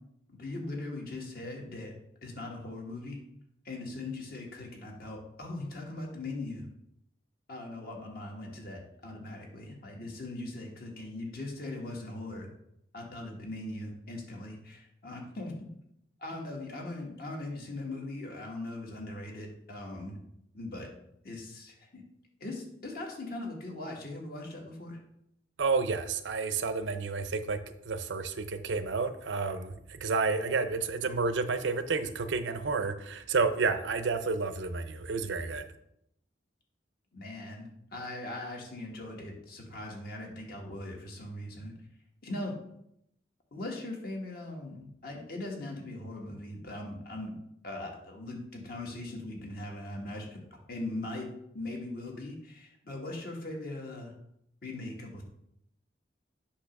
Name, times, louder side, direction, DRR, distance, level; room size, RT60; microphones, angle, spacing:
voice 1, 0.3-1.9 2.2-3.2 3.6-6.6 7.5-12.5 12.9-15.5 16.2-20.2 20.5-20.9 21.2-22.0 22.4-25.0 37.1-41.7 42.2-42.5 43.5-47.4 47.6-50.4 50.7-51.3 51.5-54.1 54.6-55.2, left 2 dB, 55° left, 0 dB, 1.5 m, -40 dB
voice 2, 25.6-35.6, right 4 dB, 85° right, 10 dB, 0.6 m, -30 dB
8.3 x 3.0 x 5.9 m, 0.77 s
head